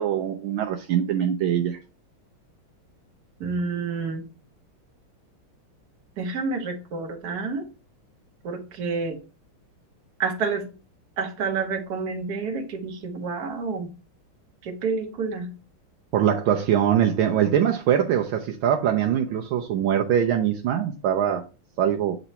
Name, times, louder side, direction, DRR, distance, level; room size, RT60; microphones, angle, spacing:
voice 1, 0.0-1.8 16.1-21.4 21.8-22.1, right 9 dB, 75° right, 1.4 m, -22 dB
voice 2, 3.4-4.2 6.2-7.6 8.4-9.2 10.2-10.7 11.2-13.9 14.6-15.5, right 4 dB, 55° right, 1.4 m, -29 dB
7.9 x 3.0 x 4.1 m
omnidirectional pair, 2.4 m